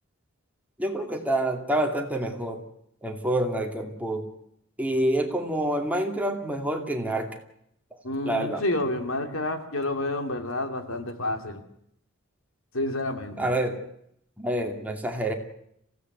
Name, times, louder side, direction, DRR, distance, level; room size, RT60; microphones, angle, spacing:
voice 1, 0.8-2.6 3.0-4.3 4.8-7.4 8.2-8.6 13.4-13.8 14.4-15.3, right 1 dB, 10° right, 3 dB, 2.5 m, -27 dB
voice 2, 8.0-11.6 12.7-13.5, left 2 dB, 75° left, 6 dB, 2.7 m, -29 dB
27.0 x 16.5 x 7.9 m, 0.75 s
head